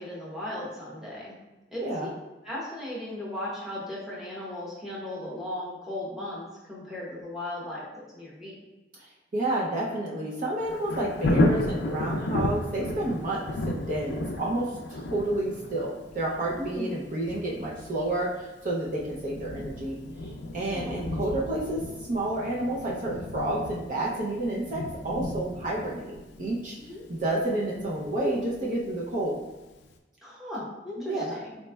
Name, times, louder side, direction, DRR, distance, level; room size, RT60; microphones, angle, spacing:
voice 1, 0.0-1.4 1.7-2.1 2.4-7.9 8.1-8.6 16.6-16.9 20.7-21.0 26.8-27.0 30.2-31.5, left 1 dB, ahead, -7 dB, 0.8 m, -36 dB
voice 2, 9.3-20.0 20.5-21.8 22.1-26.8 27.1-29.4 31.0-31.4, right 1 dB, 45° right, -3 dB, 0.5 m, -30 dB
Thunder, 10.6-29.4 29.8-29.9, left 1 dB, 70° left, 0.4 m, -33 dB
4.1 x 3.1 x 2.2 m, 1.1 s
head